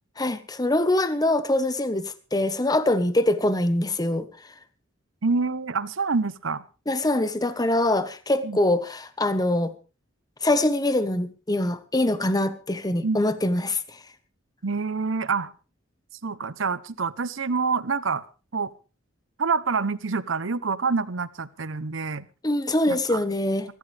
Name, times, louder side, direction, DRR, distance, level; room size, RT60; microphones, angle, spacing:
voice 1, 0.2-4.3 6.9-9.7 10.4-14.0 22.4-23.7, left 1 dB, 20° left, 1.1 m, -24 dB
voice 2, 5.2-6.6 8.4-8.6 13.0-13.2 14.6-15.5 16.2-18.2 18.5-18.7 19.4-22.3 22.9-23.2, right 4 dB, 65° right, 0.8 m, -26 dB
23.5 x 13.0 x 3.4 m
head